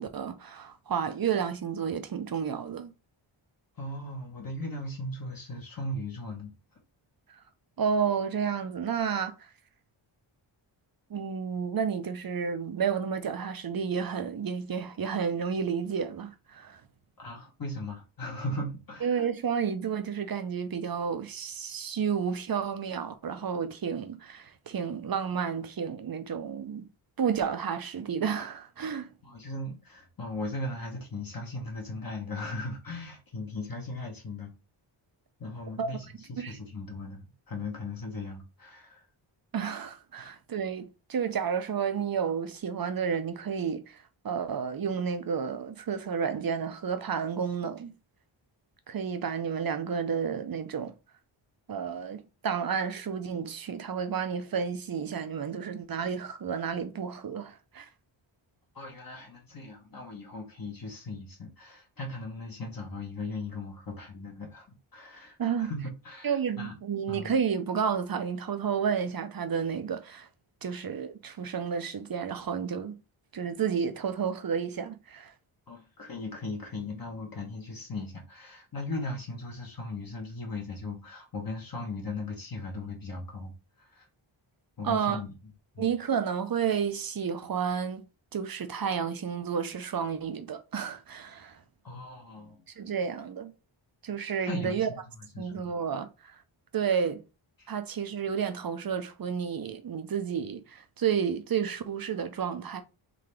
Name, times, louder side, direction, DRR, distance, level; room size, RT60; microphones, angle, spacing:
voice 1, 0.0-2.9 7.8-9.5 11.1-16.8 19.0-26.9 27.2-29.1 35.8-35.9 36.4-36.6 39.5-44.0 44.2-47.9 48.9-50.9 51.7-57.9 65.4-65.7 66.2-70.3 70.6-73.0 73.3-75.3 84.8-85.2 85.8-88.0 88.3-91.6 92.8-93.5 94.0-94.9 95.4-96.4 96.7-97.2 97.7-102.8, right 7 dB, 45° right, 0.6 m, -31 dB
voice 2, 3.8-6.5 17.2-19.3 29.2-34.5 35.4-39.1 40.2-40.3 58.7-64.7 64.9-66.8 67.1-67.3 70.7-70.8 75.7-83.5 83.8-84.1 84.8-85.3 85.7-85.9 91.8-92.6 94.4-95.0 95.3-95.7 97.6-97.7, left 2 dB, 45° left, 1.1 m, -38 dB
3.8 x 2.8 x 3.3 m
wide cardioid pair, 95°, 50 cm